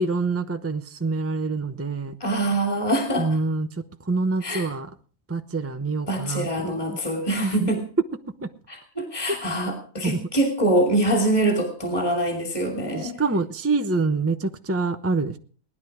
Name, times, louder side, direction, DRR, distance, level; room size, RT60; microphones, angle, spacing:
voice 1, 0.0-2.2 3.2-3.7 4.0-4.9 5.3-7.0 7.4-7.7 8.4-8.5 10.0-10.2 12.9-15.4, right 3 dB, 15° right, 7 dB, 0.7 m, -26 dB
voice 2, 2.2-3.3 4.4-4.7 6.1-7.8 8.7-13.2, right 1 dB, 15° left, 3 dB, 2.9 m, -24 dB
19.5 x 11.0 x 4.9 m, 0.43 s
omnidirectional pair, 1.4 m